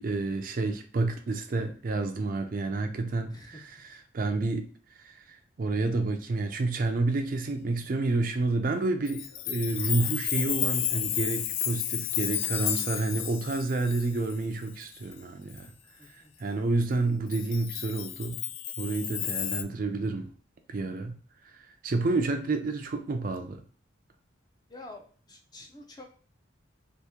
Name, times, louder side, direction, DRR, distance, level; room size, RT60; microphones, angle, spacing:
voice 1, 0.0-4.6 5.0-15.7 16.1-18.4 18.8-20.3 20.7-21.2 21.4-23.6, right 3 dB, 45° right, 0.4 m, -29 dB
voice 2, 3.3-3.7 16.0-16.3 24.7-26.1, left 2 dB, 20° left, 0.5 m, -48 dB
Chime, 9.1-15.1 15.6-15.7 17.3-19.6, left 11 dB, 80° left, 0.3 m, -32 dB
2.9 x 2.6 x 3.4 m
head